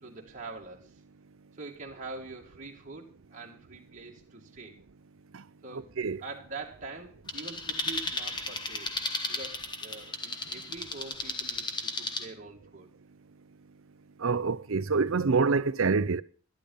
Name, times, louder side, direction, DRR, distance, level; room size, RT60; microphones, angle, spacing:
voice 1, 0.0-1.0 1.5-4.8 5.6-12.9, right 3 dB, 35° right, 2.1 m, -44 dB
voice 2, 5.7-6.2 14.2-16.2, right 4 dB, 60° right, 0.6 m, -26 dB
sound 1, 7.3-12.3, left 2 dB, 20° left, 1.3 m, -35 dB
12.0 x 12.0 x 5.5 m
head